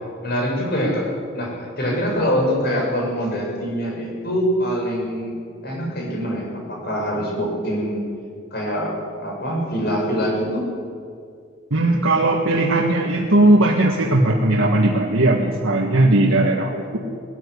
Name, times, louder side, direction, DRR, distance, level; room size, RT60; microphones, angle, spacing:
voice 1, 0.2-1.1 1.3-5.3 5.6-8.0 8.5-10.7 16.8-16.9, equal, 50° left, -1 dB, 6.6 m, -24 dB
voice 2, 11.7-17.0, right 2 dB, 85° right, 0 dB, 1.8 m, -18 dB
19.5 x 14.5 x 9.9 m, 2.2 s
head